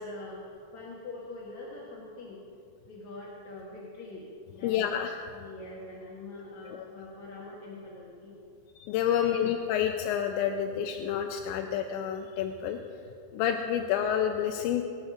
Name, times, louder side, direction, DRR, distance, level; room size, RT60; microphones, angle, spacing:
voice 1, 0.0-2.4 2.9-4.3 4.6-4.9 5.3-8.3 9.1-9.5, left 2 dB, 50° left, -5 dB, 2.4 m, -44 dB
voice 2, 4.6-5.2 6.7-6.9 8.8-12.8 13.3-14.8, left 9 dB, 85° left, 4 dB, 2.9 m, -29 dB
25.0 x 8.4 x 6.6 m, 2.5 s
omnidirectional pair, 5.2 m